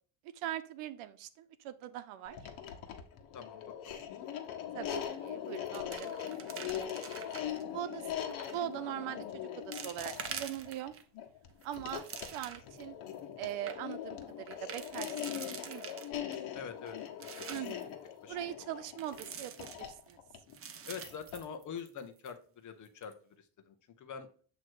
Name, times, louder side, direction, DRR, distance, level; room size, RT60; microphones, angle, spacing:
voice 1, 0.3-2.4 4.7-6.2 7.7-10.9 11.6-12.9 13.4-16.0 17.5-18.0 18.3-20.2, right 12 dB, 80° right, 12 dB, 0.9 m, -41 dB
sound 1, 2.3-21.5, left 10 dB, 70° left, 1.4 m, -41 dB
voice 2, 3.3-4.1 16.5-17.5 18.2-18.7 20.9-24.4, left 6 dB, 40° left, 8 dB, 0.9 m, -46 dB
sound 2, 4.9-5.3 5.5-7.6 8.3-8.7 9.2-9.3 9.7-11.0 11.5-12.8 13.2-13.3 13.5-13.8 14.5-16.4 16.9-17.8 19.0-20.1 20.5-22.0 22.3-22.4 22.9-23.1, right 7 dB, 30° right, 0.6 m, -46 dB
7.6 x 3.1 x 4.5 m, 0.44 s
cardioid pair, 140°, 49 cm